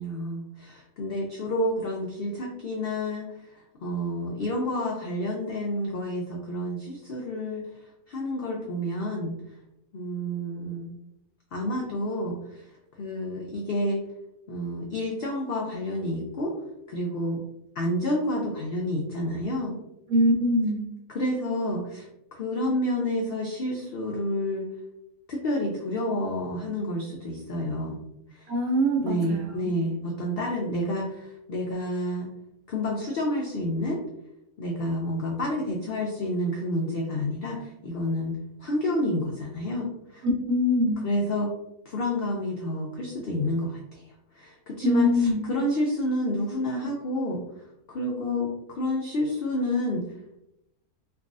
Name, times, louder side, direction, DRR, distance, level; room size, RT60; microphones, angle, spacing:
voice 1, 0.0-9.3 9.9-10.9 11.5-12.7 13.0-14.0 14.5-16.5 16.9-17.4 17.8-19.8 21.1-24.7 25.3-28.0 28.3-28.5 29.0-32.3 32.7-34.0 34.6-40.3 41.0-41.5 41.9-44.0 44.3-47.4 47.9-50.0, left 1 dB, 75° left, -1 dB, 0.5 m, -29 dB
voice 2, 20.1-20.8 28.5-29.7 40.4-41.0 44.8-45.4, left 1 dB, 75° right, -1 dB, 1.3 m, -23 dB
3.4 x 2.3 x 2.4 m, 0.83 s
omnidirectional pair, 1.5 m